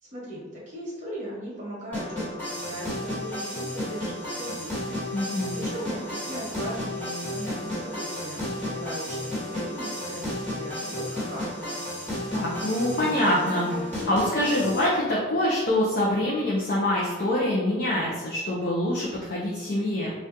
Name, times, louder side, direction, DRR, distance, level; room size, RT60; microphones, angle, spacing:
voice 1, 0.1-11.7, right 1 dB, 40° right, -6 dB, 1.2 m, -38 dB
sound 1, 1.9-14.9, left 1 dB, 10° left, 1.3 m, -33 dB
voice 2, 5.1-5.5 12.3-20.1, left 1 dB, 50° left, -5 dB, 0.5 m, -25 dB
3.5 x 2.4 x 2.7 m, 1.2 s
head